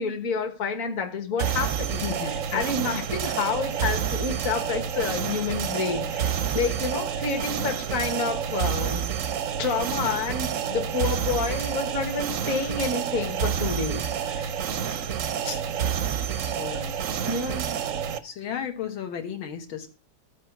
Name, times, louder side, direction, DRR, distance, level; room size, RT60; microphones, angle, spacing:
voice 1, 0.0-2.0 2.2-9.0 9.6-14.5 17.3-17.8, left 4 dB, 45° left, 5 dB, 1.7 m, -29 dB
sound 1, 1.4-18.2, right 8 dB, 65° right, 0.8 m, -29 dB
voice 2, 1.9-2.6 15.4-15.6 16.4-17.0 18.2-20.0, left 8 dB, 85° left, 4 dB, 2.1 m, -34 dB
14.0 x 4.8 x 5.9 m, 0.34 s
omnidirectional pair, 2.1 m